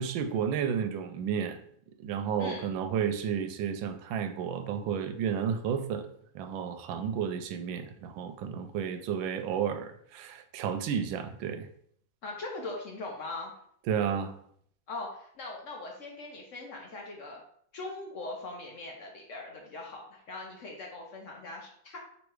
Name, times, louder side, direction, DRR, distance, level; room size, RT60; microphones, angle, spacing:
voice 1, 0.0-1.6 2.0-6.1 6.3-11.7 13.9-14.4, right 7 dB, 80° right, 7 dB, 1.3 m, -32 dB
voice 2, 12.2-13.5 14.9-17.4 17.7-22.0, left 2 dB, 60° left, 0 dB, 0.8 m, -40 dB
3.3 x 3.1 x 4.7 m, 0.64 s
omnidirectional pair, 2.1 m